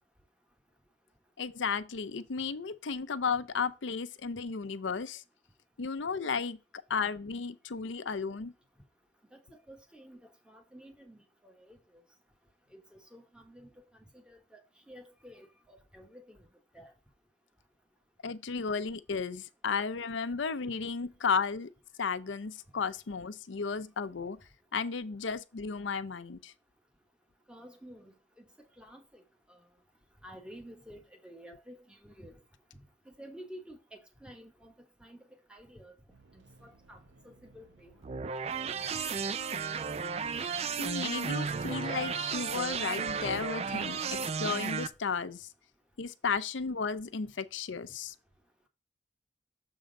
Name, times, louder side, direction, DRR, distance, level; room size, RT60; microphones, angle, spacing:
voice 1, 1.4-5.2 5.8-6.6 6.9-8.5 18.2-21.7 22.0-24.4 24.7-26.5 40.8-45.5 46.0-48.1, left 5 dB, 80° left, 0.6 m, -34 dB
voice 2, 9.7-11.8 12.7-13.8 14.1-16.5 16.7-16.9 27.5-28.5 28.8-29.2 29.5-29.7 30.2-32.4 33.0-35.2 35.5-35.9 36.3-37.9 38.6-39.4, equal, 5° right, 1.2 m, -51 dB
sound 1, 36.1-45.0, right 3 dB, 70° right, 0.9 m, -60 dB
sound 2, 38.0-44.9, right 5 dB, 35° right, 0.4 m, -34 dB
7.0 x 3.8 x 5.2 m
head